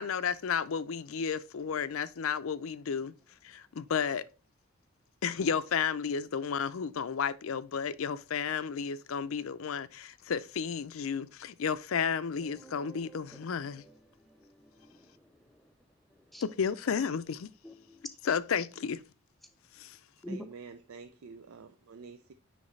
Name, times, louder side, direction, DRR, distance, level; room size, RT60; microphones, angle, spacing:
voice 1, 0.0-3.1 3.4-4.2 5.2-13.8 16.4-17.5 18.2-19.0 19.8-20.0, left 6 dB, 75° left, 0.5 m, -32 dB
voice 2, 12.6-13.4 13.9-14.0 14.3-15.1 16.3-16.4 17.6-18.0 20.2-20.5, equal, ahead, 0.5 m, -46 dB
voice 3, 20.3-22.3, right 5 dB, 85° right, 0.5 m, -48 dB
9.5 x 3.2 x 3.1 m
head